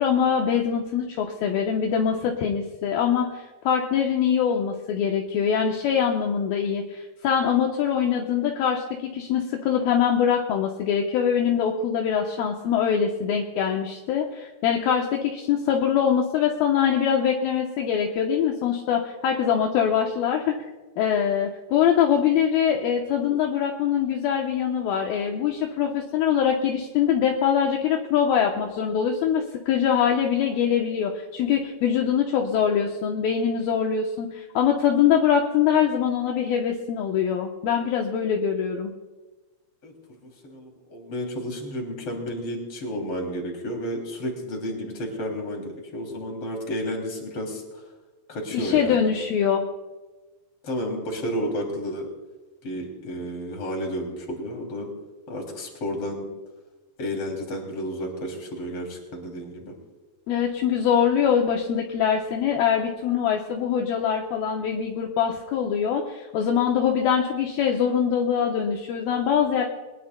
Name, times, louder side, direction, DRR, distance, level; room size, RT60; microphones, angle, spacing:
voice 1, 0.0-8.8 9.1-20.6 21.0-38.9 48.5-49.6 60.3-69.7, left 8 dB, 75° left, 1 dB, 2.6 m, -23 dB
voice 2, 39.8-47.8 48.3-49.1 50.6-52.1 52.6-54.9 55.3-56.3 57.0-59.7, equal, 35° left, 1 dB, 3.4 m, -32 dB
22.0 x 20.0 x 2.2 m, 1.2 s
omnidirectional pair, 4.7 m